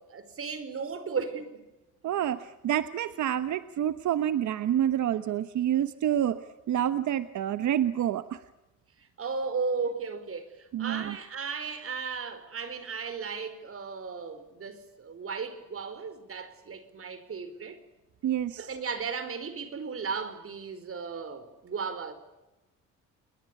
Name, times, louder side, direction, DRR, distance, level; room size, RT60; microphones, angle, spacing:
voice 1, 0.0-1.6 9.0-17.8 18.6-22.1, right 5 dB, 50° right, 4.8 m, -35 dB
voice 2, 2.0-6.4 6.7-8.4 10.7-11.2 18.2-18.7, right 11 dB, 70° right, 1.2 m, -28 dB
29.5 x 21.0 x 8.4 m
cardioid pair, 90°, 30 cm